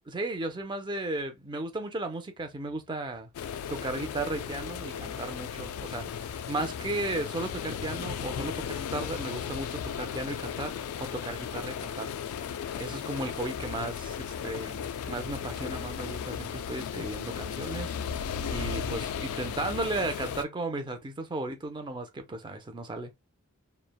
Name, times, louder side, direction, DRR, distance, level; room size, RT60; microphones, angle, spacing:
voice 1, 0.1-3.3 3.7-12.1 12.8-17.9 18.5-23.1, right 2 dB, 20° right, 0.5 m, -35 dB
sound 1, 3.3-20.4, left 7 dB, 75° left, 0.3 m, -36 dB
3.1 x 2.0 x 2.2 m
head